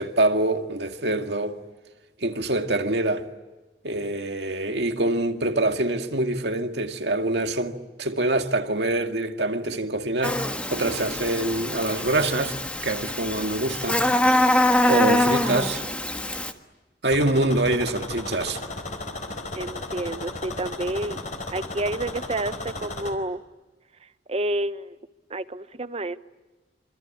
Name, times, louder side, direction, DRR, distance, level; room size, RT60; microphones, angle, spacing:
voice 1, 0.0-1.6 2.2-3.3 3.8-12.6 12.8-14.0 14.9-15.8 17.0-18.6, right 2 dB, 70° right, 2.1 m, -25 dB
Buzz, 10.2-16.5, left 1 dB, 5° left, 1.5 m, -24 dB
sound 1, 17.1-23.1, left 2 dB, 45° left, 4.3 m, -35 dB
voice 2, 19.5-21.2 21.5-23.4 24.3-25.0 25.3-26.2, right 1 dB, 35° right, 1.0 m, -29 dB
26.5 x 25.5 x 8.6 m
head